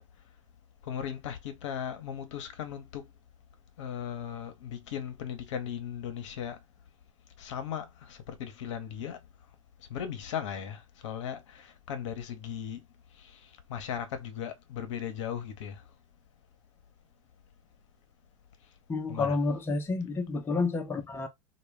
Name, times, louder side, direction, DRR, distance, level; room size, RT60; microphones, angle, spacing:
voice 1, 0.8-3.1 3.8-6.6 7.4-9.2 9.9-12.8 13.2-15.8 19.1-19.4, left 8 dB, 65° left, 0.6 m, -37 dB
voice 2, 18.9-21.3, left 3 dB, 15° left, 0.5 m, -30 dB
2.2 x 2.1 x 3.2 m
hypercardioid pair, 95°, 17 cm